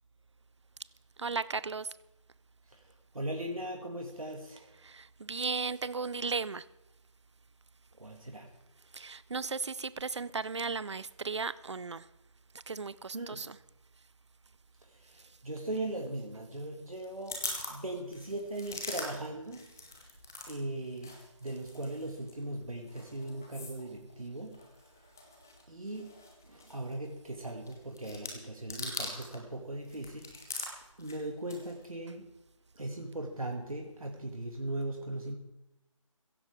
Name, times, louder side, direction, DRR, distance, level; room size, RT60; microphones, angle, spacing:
voice 1, 1.2-1.9 4.8-6.6 8.9-12.0 12.7-13.6, right 4 dB, 55° right, 18 dB, 0.6 m, -35 dB
voice 2, 2.7-4.8 8.0-8.5 13.1-13.5 14.8-17.4 17.7-19.7 20.5-24.6 25.7-26.2 26.4-30.7 31.0-32.3 32.7-35.3, right 1 dB, 85° right, 1 dB, 2.3 m, -39 dB
sound 1, 16.9-20.6 20.8-29.4 29.7-31.9, left 3 dB, 5° left, 0.4 m, -43 dB
16.0 x 15.5 x 3.7 m, 0.97 s
figure-of-eight pair, 160°, 18 cm